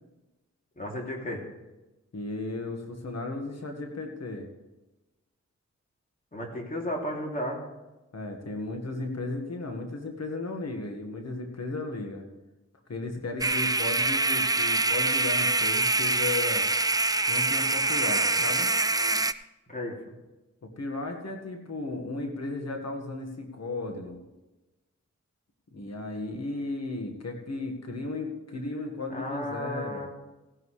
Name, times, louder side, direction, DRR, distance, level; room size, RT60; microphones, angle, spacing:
voice 1, 0.8-1.4 6.3-7.6 19.7-20.0 29.1-30.1, left 1 dB, 30° left, -1 dB, 2.9 m, -33 dB
voice 2, 2.1-4.5 8.1-12.2 12.9-16.7 17.3-18.7 20.6-24.2 25.7-30.1, left 2 dB, 60° left, 3 dB, 1.7 m, -35 dB
sound 1, 13.4-19.3, right 2 dB, 15° right, 0.4 m, -25 dB
16.5 x 11.0 x 3.3 m, 1.1 s
wide cardioid pair, 70°, 29 cm